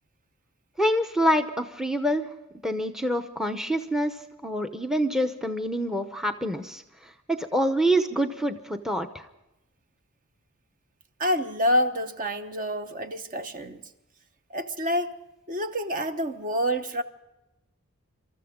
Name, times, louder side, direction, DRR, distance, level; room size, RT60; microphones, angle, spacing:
voice 1, 0.8-2.3 2.6-4.2 4.4-6.8 7.3-9.3, equal, ahead, 0.8 m, -26 dB
voice 2, 11.2-13.8 14.5-15.1 15.5-17.0, equal, 40° right, 1.0 m, -27 dB
27.0 x 13.5 x 3.7 m
head